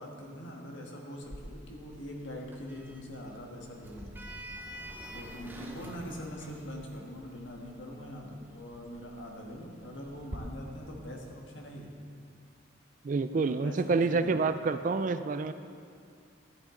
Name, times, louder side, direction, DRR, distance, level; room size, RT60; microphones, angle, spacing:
voice 1, 0.0-4.1 5.1-11.9 13.3-14.4, equal, 70° left, 0 dB, 1.5 m, -43 dB
Sliding door, 1.2-10.4, equal, 10° right, 0.7 m, -48 dB
voice 2, 13.0-15.5, right 4 dB, 40° right, 11 dB, 0.3 m, -28 dB
13.0 x 8.9 x 3.8 m, 2.4 s
head